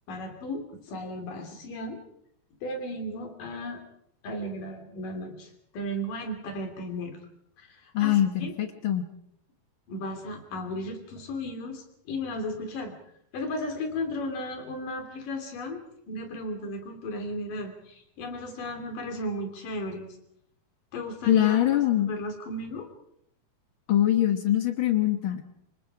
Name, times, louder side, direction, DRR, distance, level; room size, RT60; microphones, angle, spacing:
voice 1, 0.1-2.0 2.6-3.8 4.2-7.2 7.6-8.5 9.9-12.9 13.3-20.2 20.9-22.9, left 1 dB, 60° left, 5 dB, 4.7 m, -35 dB
voice 2, 7.9-9.1 21.3-22.1 23.9-25.4, left 12 dB, 80° left, 7 dB, 1.1 m, -23 dB
26.5 x 24.0 x 4.9 m, 0.75 s
omnidirectional pair, 4.3 m